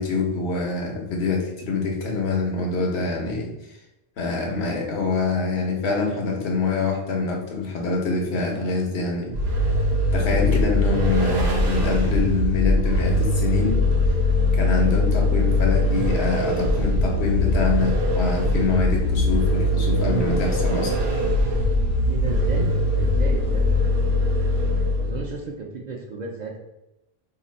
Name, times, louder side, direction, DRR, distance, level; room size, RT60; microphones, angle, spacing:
voice 1, 0.0-3.5 4.2-9.4 10.1-13.8 14.5-21.0, left 4 dB, 90° left, 1 dB, 1.0 m, -25 dB
Vehicle, 9.3-25.3, left 1 dB, 85° right, 1.0 m, -21 dB
voice 2, 22.1-24.0 24.9-26.6, right 4 dB, 55° right, 1 dB, 0.5 m, -33 dB
2.9 x 2.4 x 4.0 m, 0.92 s
omnidirectional pair, 1.0 m